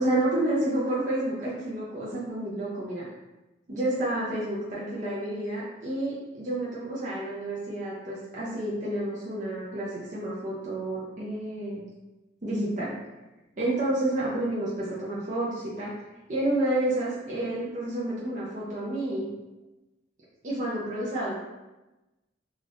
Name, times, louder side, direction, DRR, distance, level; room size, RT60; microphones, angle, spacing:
voice 1, 0.0-3.0 3.7-11.8 12.4-12.9 13.6-15.9 16.3-19.3 20.4-21.3, right 1 dB, 40° right, -6 dB, 0.6 m, -29 dB
2.5 x 2.4 x 3.4 m, 1.0 s
head